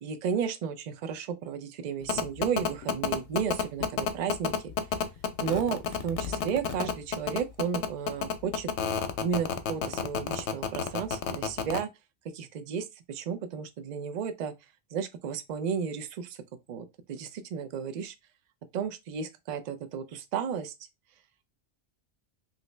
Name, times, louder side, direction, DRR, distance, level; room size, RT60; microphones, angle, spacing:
voice 1, 0.0-4.7 5.4-8.7 9.2-11.9 12.3-14.5 14.9-16.4 16.7-18.1 18.7-20.7, right 7 dB, 55° right, 0.5 m, -33 dB
sound 1, 2.1-11.8, left 7 dB, 85° left, 0.9 m, -29 dB
3.0 x 2.6 x 3.2 m
omnidirectional pair, 1.1 m